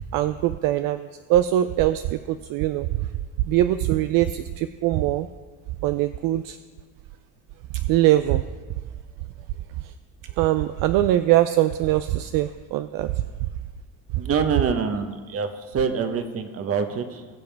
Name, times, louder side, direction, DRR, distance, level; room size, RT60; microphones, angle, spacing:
voice 1, 0.0-2.9 3.4-5.3 5.8-6.6 7.9-8.4 10.4-13.2, right 13 dB, 60° right, 10 dB, 0.5 m, -22 dB
voice 2, 14.2-17.3, right 6 dB, 40° right, 8 dB, 1.1 m, -25 dB
20.0 x 7.0 x 3.4 m, 1.4 s
cardioid pair, 120°, 37 cm